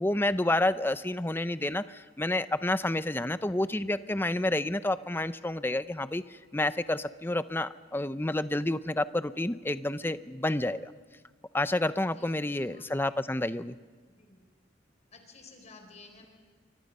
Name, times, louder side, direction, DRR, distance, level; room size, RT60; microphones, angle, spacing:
voice 1, 0.0-10.9 11.5-13.8, left 1 dB, 10° left, 13 dB, 0.6 m, -29 dB
voice 2, 12.1-13.2 14.1-14.4 15.1-16.3, left 3 dB, 40° left, 4 dB, 4.2 m, -54 dB
28.5 x 24.5 x 5.4 m, 1.5 s
head